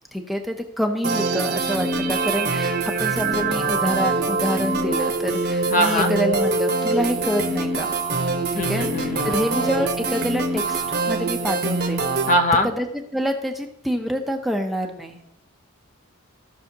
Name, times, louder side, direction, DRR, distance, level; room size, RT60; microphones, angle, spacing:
voice 1, 0.1-7.9 8.5-12.1 12.6-15.2, equal, ahead, 3 dB, 0.6 m, -27 dB
sound 1, 1.0-12.3, right 3 dB, 45° right, 1.0 m, -24 dB
voice 2, 5.7-6.1 8.5-9.4 12.3-12.7, equal, 35° left, 6 dB, 0.7 m, -21 dB
15.0 x 6.3 x 2.8 m, 0.80 s
head